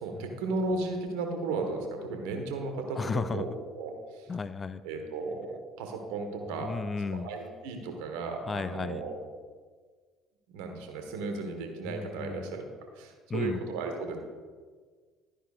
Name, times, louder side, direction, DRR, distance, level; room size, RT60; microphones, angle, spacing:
voice 1, 0.0-4.3 4.8-5.5 5.8-6.7 7.1-9.2 10.5-12.6 13.0-14.2, right 3 dB, 70° right, 4 dB, 1.6 m, -35 dB
voice 2, 3.0-3.5 4.3-4.8 6.6-7.3 8.5-9.0 11.8-12.6 13.3-13.6, left 4 dB, 30° left, 13 dB, 0.5 m, -34 dB
13.0 x 10.0 x 2.6 m, 1.5 s
hypercardioid pair, 60°, 0 cm